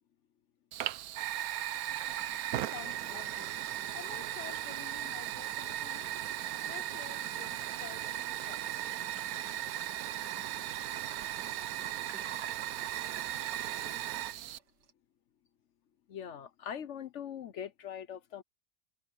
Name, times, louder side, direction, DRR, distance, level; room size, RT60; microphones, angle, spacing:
Fire, 0.7-14.6, right 12 dB, 70° right, 1.0 m, -37 dB
sound 1, 1.9-14.9, right 7 dB, 85° right, 2.0 m, -52 dB
voice 1, 2.5-3.6 3.9-6.2 6.6-9.0, left 13 dB, 80° left, 1.3 m, -50 dB
voice 2, 16.1-18.4, left 8 dB, 55° left, 0.9 m, -42 dB
omnidirectional pair, 1.8 m